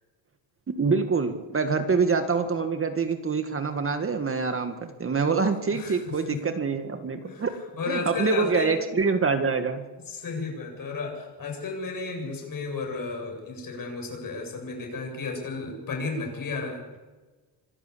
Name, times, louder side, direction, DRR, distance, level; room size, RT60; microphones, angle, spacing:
voice 1, 0.8-7.5 7.9-9.8, right 5 dB, 30° right, 7 dB, 1.9 m, -25 dB
voice 2, 5.7-6.4 7.2-8.7 10.1-16.8, left 4 dB, 45° left, 2 dB, 7.8 m, -33 dB
26.0 x 12.0 x 8.6 m, 1.2 s
cardioid pair, 115°, 45 cm